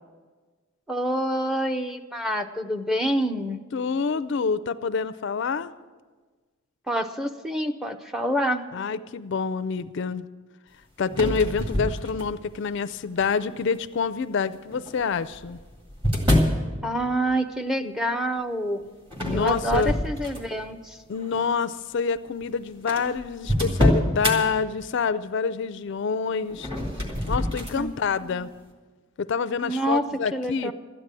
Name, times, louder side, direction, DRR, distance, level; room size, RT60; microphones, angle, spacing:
voice 1, 0.9-3.6 6.9-8.6 16.8-18.9 19.3-21.0 27.8-27.9 28.3-28.4 29.6-30.0 30.3-30.7, right 1 dB, ahead, 7 dB, 0.5 m, -27 dB
voice 2, 3.7-5.7 8.7-10.3 11.0-15.6 19.2-20.0 21.1-26.7 27.3-28.5 29.2-30.7, left 5 dB, 55° left, 14 dB, 0.4 m, -27 dB
sound 1, 11.1-12.5 13.2-13.6 14.7-16.6 19.1-20.7 21.1-21.4 22.2-22.3 22.4-22.5 22.9-24.4 26.5-27.8, left 1 dB, 25° right, 1.9 m, -25 dB
13.0 x 9.7 x 7.4 m, 1.4 s
head